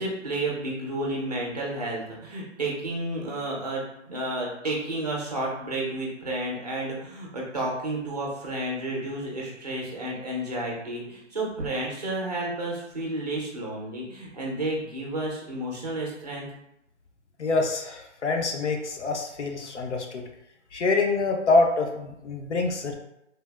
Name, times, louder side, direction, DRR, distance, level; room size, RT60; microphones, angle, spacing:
voice 1, 0.0-16.5, right 1 dB, 35° right, -3 dB, 0.5 m, -31 dB
voice 2, 17.4-20.2 20.7-22.9, left 3 dB, 65° left, 3 dB, 0.5 m, -25 dB
3.3 x 2.3 x 2.2 m, 0.83 s
hypercardioid pair, 175°, 37 cm